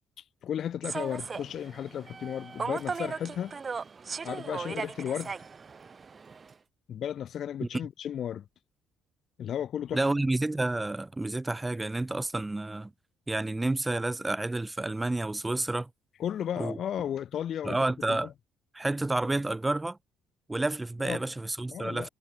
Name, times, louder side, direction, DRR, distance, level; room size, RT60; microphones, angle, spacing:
voice 1, 0.4-3.6 4.2-5.3 6.9-8.5 9.4-10.0 16.2-17.8 18.1-18.3 21.0-21.2 21.7-22.1, left 9 dB, 60° left, 1.9 m, -34 dB
Human voice / Subway metro underground, 0.8-6.5, right 5 dB, 35° right, 5.8 m, -38 dB
voice 2, 9.9-12.9 13.3-15.9 16.6-16.8 17.6-18.3 18.7-20.0 20.5-22.1, right 2 dB, 15° right, 0.8 m, -30 dB
hypercardioid pair, 60°, 0 cm